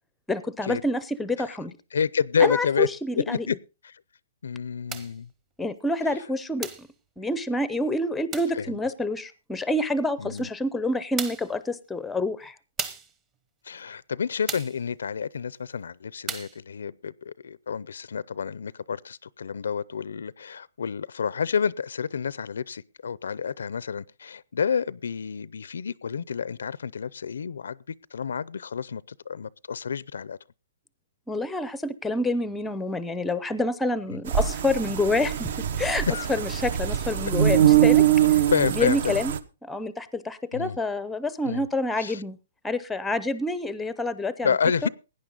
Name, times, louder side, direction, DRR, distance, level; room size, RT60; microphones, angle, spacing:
voice 1, 0.3-1.7 2.4-3.5 5.6-6.9 7.2-12.5 31.3-35.5 35.8-38.0 38.8-39.3 39.6-42.4 42.6-44.5, left 2 dB, 5° left, 0.6 m, -27 dB
voice 2, 1.9-2.9 3.1-3.6 3.8-4.0 4.4-5.3 8.5-8.8 10.2-10.5 13.6-30.4 36.1-36.3 38.5-39.2 40.5-40.8 41.4-41.7 42.0-42.2 44.4-44.9, left 6 dB, 85° left, 0.5 m, -29 dB
sound 1, 4.9-5.2 6.6-6.9 8.3-8.6 10.4-10.5 11.2-11.6 12.8-13.2 14.5-14.8 16.3-16.6, right 5 dB, 15° right, 1.0 m, -35 dB
sound 2, 34.3-39.4, right 11 dB, 55° right, 1.0 m, -22 dB
17.0 x 9.8 x 3.9 m
hypercardioid pair, 165°, 0 cm